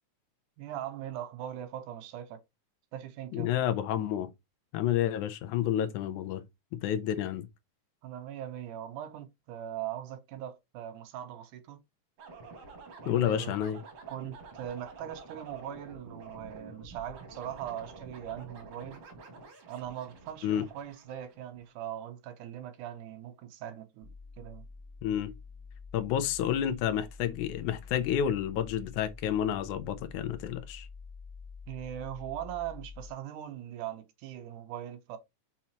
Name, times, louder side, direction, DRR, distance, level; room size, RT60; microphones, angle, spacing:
voice 1, 0.6-2.4 2.9-3.5 8.0-11.8 13.0-13.5 14.1-19.0 19.7-24.6 31.7-35.2, right 11 dB, 85° right, 2.3 m, -40 dB
voice 2, 3.3-4.3 4.7-6.4 6.8-7.5 13.1-13.8 20.4-20.6 25.0-25.3 25.9-30.9, left 10 dB, 80° left, 2.1 m, -30 dB
sound 1, 12.2-21.7, right 3 dB, 55° right, 2.6 m, -49 dB
sound 2, 24.0-33.1, left 4 dB, 20° left, 1.8 m, -48 dB
5.8 x 5.7 x 2.9 m
omnidirectional pair, 3.6 m